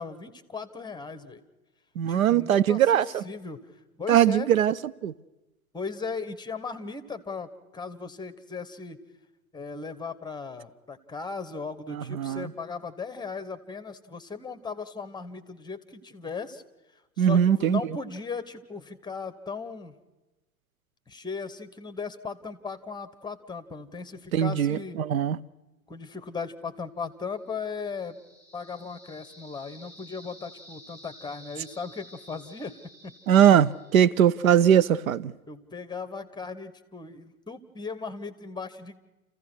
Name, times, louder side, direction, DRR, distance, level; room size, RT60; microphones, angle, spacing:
voice 1, 0.0-1.4 2.1-3.7 4.0-4.5 5.7-9.0 9.5-16.6 17.2-20.0 21.1-25.0 25.9-28.2 28.5-33.1 35.5-39.0, left 5 dB, 10° left, 1.1 m, -37 dB
voice 2, 2.0-3.2 4.1-4.7 5.0-5.1 11.9-12.5 17.2-17.8 24.3-25.4 33.3-35.3, right 9 dB, 70° right, 0.6 m, -21 dB
sound 1, 27.4-34.4, equal, 10° right, 6.0 m, -52 dB
28.5 x 15.5 x 6.2 m
figure-of-eight pair, 90°, 42 cm